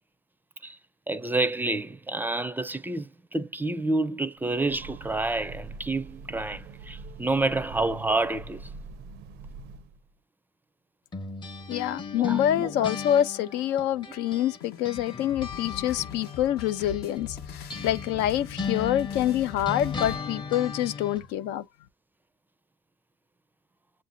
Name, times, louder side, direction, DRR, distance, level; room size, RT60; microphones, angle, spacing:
voice 1, 1.1-8.6 12.2-12.7, right 2 dB, 10° right, 0.4 m, -28 dB
Train, 4.4-10.1, right 3 dB, 80° right, 0.5 m, -43 dB
sound 1, 11.1-14.6 14.8-21.2, left 5 dB, 25° left, 0.8 m, -37 dB
voice 2, 11.7-21.6, left 11 dB, 90° left, 0.5 m, -26 dB
sound 2, 14.6-20.2, left 8 dB, 70° left, 1.0 m, -42 dB
7.4 x 2.6 x 2.5 m
cardioid pair, 110°, 17 cm